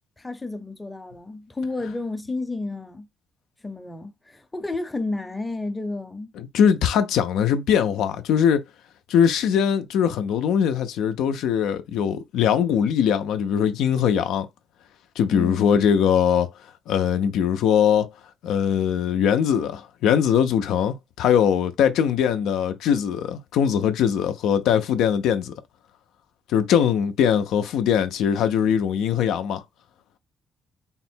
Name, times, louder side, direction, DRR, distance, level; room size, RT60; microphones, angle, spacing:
voice 1, 0.2-3.1 3.6-6.3 15.3-15.8, left 2 dB, 15° left, 0.6 m, -31 dB
voice 2, 6.4-8.6 9.1-14.5 15.2-16.5 16.9-18.1 18.4-25.5 26.5-29.6, left 8 dB, 85° left, 0.4 m, -21 dB
3.5 x 2.1 x 4.3 m
cardioid pair, 90°, 0 cm